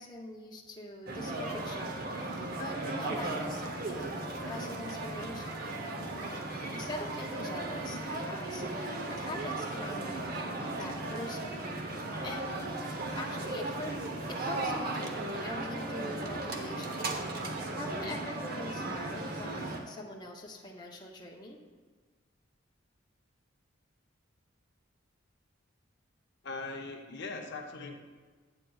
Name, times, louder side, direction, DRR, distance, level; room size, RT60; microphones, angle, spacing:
voice 1, 0.0-4.1 4.4-5.8 6.1-6.4 6.7-11.7 12.2-12.7 13.1-14.0 14.3-17.0 17.3-21.6, left 2 dB, 20° left, -1 dB, 0.6 m, -43 dB
sound 1, 1.1-19.8, right 2 dB, 50° right, 0.7 m, -36 dB
voice 2, 26.4-27.9, left 3 dB, 55° left, 2 dB, 0.7 m, -40 dB
8.9 x 8.5 x 2.3 m, 1.4 s
head